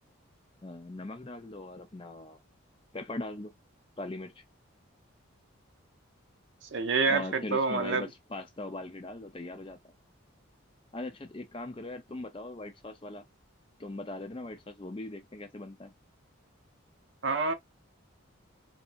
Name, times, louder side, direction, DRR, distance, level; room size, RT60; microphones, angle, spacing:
voice 1, 0.6-2.4 2.9-3.5 4.0-4.4 7.1-9.9 10.9-13.2 13.8-15.9, left 2 dB, 25° left, 0.5 m, -40 dB
voice 2, 6.7-8.1 17.2-17.5, right 4 dB, 60° right, 0.6 m, -27 dB
2.8 x 2.6 x 2.5 m
head